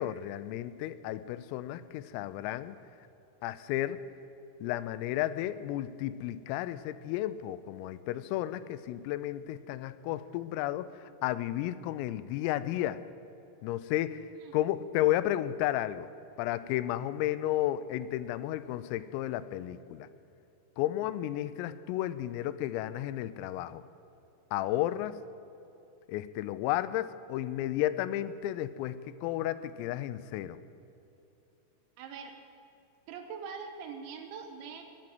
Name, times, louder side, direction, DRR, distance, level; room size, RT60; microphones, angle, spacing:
voice 1, 0.0-2.8 3.4-4.0 4.6-10.9 11.2-13.0 13.6-16.1 16.4-20.1 20.8-23.8 24.5-25.2 26.1-30.6, left 13 dB, 90° left, 14 dB, 3.3 m, -33 dB
voice 2, 32.0-32.4 33.1-34.8, right 6 dB, 75° right, 6 dB, 3.1 m, -43 dB
22.0 x 7.5 x 7.7 m, 2.8 s
omnidirectional pair, 5.9 m